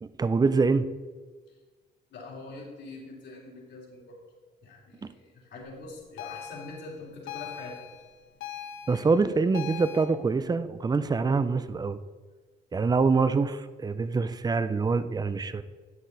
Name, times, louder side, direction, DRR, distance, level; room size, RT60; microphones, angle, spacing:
voice 1, 0.0-0.9 5.0-5.1 8.9-12.0 12.7-15.6, right 4 dB, 20° right, 13 dB, 0.5 m, -25 dB
voice 2, 2.1-4.2 4.6-7.8, left 3 dB, 60° left, -4 dB, 3.0 m, -44 dB
sound 1, 6.2-10.0, left 10 dB, 90° left, 1.0 m, -41 dB
9.6 x 6.2 x 4.0 m, 1.4 s
cardioid pair, 90°, 20 cm